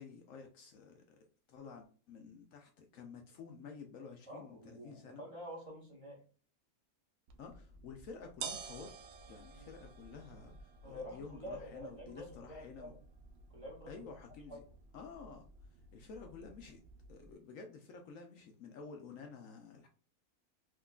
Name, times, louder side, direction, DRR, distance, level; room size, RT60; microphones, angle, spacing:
voice 1, 0.0-5.2 7.4-9.0 9.3-12.9 13.9-14.6 14.9-15.4 15.9-16.8 17.1-19.9, left 5 dB, 70° left, 3 dB, 0.9 m, -51 dB
voice 2, 4.3-6.2 9.5-9.7 10.8-13.0 13.5-14.0 14.5-14.6, equal, 25° right, -4 dB, 0.9 m, -48 dB
sound 1, 7.3-17.3, right 5 dB, 70° right, 0.6 m, -52 dB
3.6 x 2.9 x 2.3 m, 0.39 s
omnidirectional pair, 1.6 m